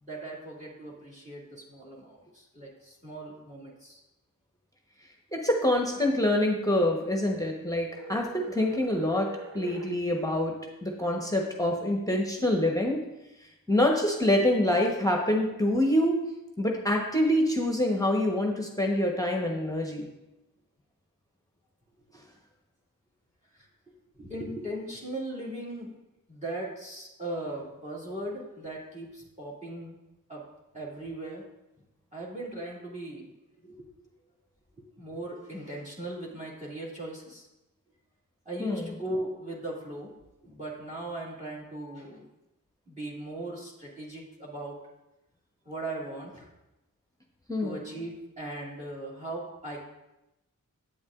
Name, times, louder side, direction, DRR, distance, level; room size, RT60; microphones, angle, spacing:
voice 1, 0.0-4.0 22.1-22.2 23.5-23.7 24.1-25.9 26.3-30.0 30.3-30.4 30.7-31.4 32.1-33.3 33.6-33.9 35.0-37.5 38.5-40.1 40.4-42.3 42.9-44.8 45.6-46.5 47.6-49.8, right 1 dB, 20° right, -4 dB, 2.3 m, -38 dB
voice 2, 5.3-10.6 10.8-13.0 13.4-16.2 16.6-20.1 38.6-38.9 47.5-47.8, left 1 dB, 10° left, 0 dB, 1.1 m, -26 dB
sound 1, 7.9-10.0, right 6 dB, 40° right, 0.9 m, -43 dB
8.3 x 7.2 x 2.5 m, 0.96 s
cardioid pair, 40°, 34 cm